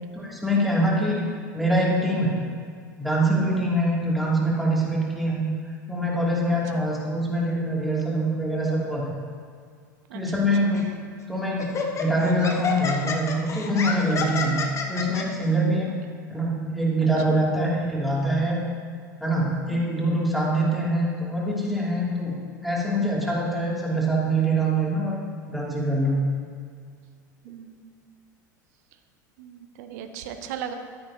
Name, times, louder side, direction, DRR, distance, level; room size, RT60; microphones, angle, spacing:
voice 1, 0.1-1.3 1.5-2.4 3.0-5.4 5.9-9.1 10.1-10.8 11.3-14.6 14.9-15.9 16.3-18.6 19.2-22.3 22.6-25.2 25.5-26.2, right 1 dB, ahead, -5 dB, 2.7 m, -24 dB
voice 2, 3.4-3.7 6.7-6.9 10.1-10.7 17.3-17.5 19.7-20.1 27.4-27.8 29.4-30.7, right 9 dB, 55° right, 7 dB, 0.9 m, -39 dB
Laughter, 10.7-11.0 11.6-15.2, left 4 dB, 30° left, 1.1 m, -29 dB
13.0 x 9.5 x 2.9 m, 2.1 s
figure-of-eight pair, 75°, 10 cm